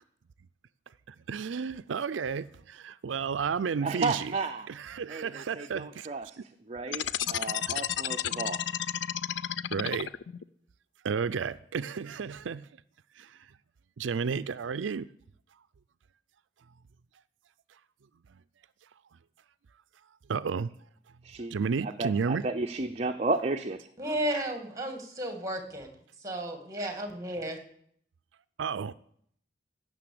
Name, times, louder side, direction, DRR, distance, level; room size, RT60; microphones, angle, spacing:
voice 1, 1.1-4.3 4.7-6.1 7.2-7.4 7.7-7.8 9.7-10.1 11.0-12.7 13.2-13.4 14.0-15.1 20.3-20.7 21.5-22.4 28.6-28.9, right 6 dB, 85° right, 0.4 m, -32 dB
voice 2, 3.8-4.7 5.1-6.4 6.7-8.6 21.2-21.5 21.8-23.9, right 3 dB, 35° right, 0.7 m, -33 dB
sound 1, 6.9-10.4, left 10 dB, 70° left, 0.5 m, -32 dB
voice 3, 24.0-25.9 26.2-27.6, right 1 dB, 20° right, 2.3 m, -33 dB
15.5 x 6.9 x 8.5 m
head